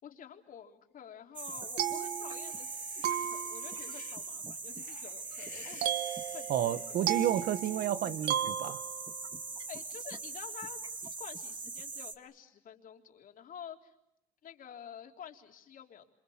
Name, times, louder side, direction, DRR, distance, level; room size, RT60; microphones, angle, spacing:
voice 1, 0.0-2.7 3.0-5.9 6.3-7.5 9.7-13.9 14.4-16.0, left 9 dB, 55° left, 3.7 m, -49 dB
sound 1, 1.4-12.2, right 4 dB, 30° right, 2.1 m, -41 dB
sound 2, 1.5-2.7 3.0-3.9 5.8-9.2, right 11 dB, 80° right, 1.5 m, -35 dB
sound 3, 1.6-4.3 4.7-7.5, left 12 dB, 75° left, 3.0 m, -56 dB
voice 2, 6.5-8.8, right 10 dB, 65° right, 1.1 m, -31 dB
27.5 x 27.0 x 7.3 m
cardioid pair, 110°, 17 cm